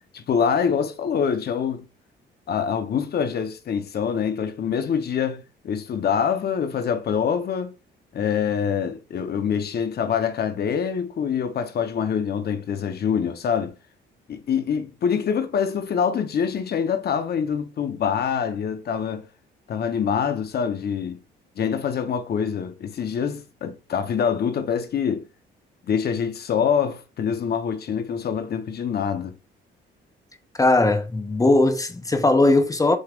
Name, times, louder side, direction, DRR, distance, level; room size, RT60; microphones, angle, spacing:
voice 1, 0.1-1.8 2.5-7.7 8.1-13.7 14.3-19.3 19.7-21.2 21.6-25.3 25.9-29.3, left 7 dB, 55° left, 0.8 m, -25 dB
voice 2, 30.6-33.0, left 2 dB, 15° left, 0.8 m, -19 dB
6.4 x 3.3 x 2.4 m
cardioid pair, 90°, 20 cm